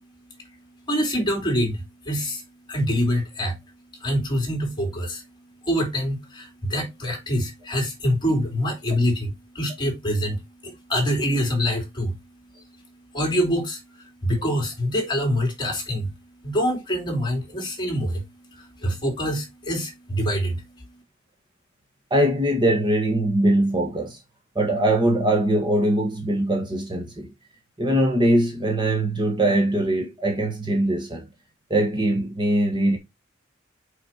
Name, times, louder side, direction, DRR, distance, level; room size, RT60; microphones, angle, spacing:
voice 1, 0.9-2.4 2.7-3.6 4.0-5.2 5.6-12.2 12.5-12.6 13.1-16.1 16.4-18.2 18.5-20.9, equal, 25° left, 3.3 m, -25 dB
voice 2, 22.1-24.2 24.5-27.3 27.8-31.3 31.7-33.0, right 1 dB, 25° right, 1.6 m, -22 dB
5.9 x 5.7 x 4.4 m
head